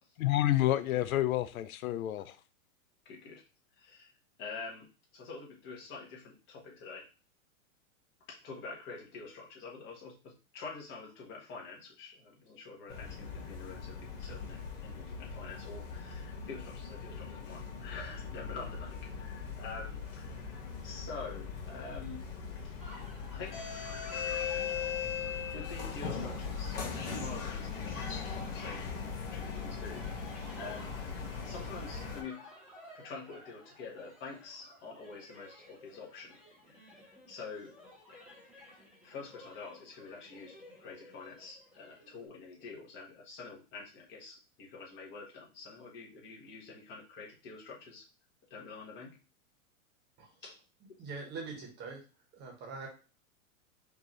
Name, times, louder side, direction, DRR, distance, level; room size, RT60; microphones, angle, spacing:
voice 1, 0.2-2.4, left 14 dB, 85° left, 0.5 m, -29 dB
voice 2, 3.0-3.4 3.7-4.1 4.4-4.9 5.1-7.1 8.3-22.2 23.3-23.7 25.5-30.9 31.4-32.4 32.9-36.4 36.7-38.2 39.0-48.0 48.5-49.2 50.4-50.5, left 4 dB, 30° left, 1.3 m, -47 dB
sound 1, 12.9-32.2, left 6 dB, 70° left, 2.0 m, -39 dB
sound 2, 22.8-42.3, left 1 dB, 5° right, 1.2 m, -55 dB
voice 3, 51.0-52.0 52.3-52.9, right 4 dB, 25° right, 1.3 m, -43 dB
5.2 x 2.8 x 3.0 m
hypercardioid pair, 145°, 41 cm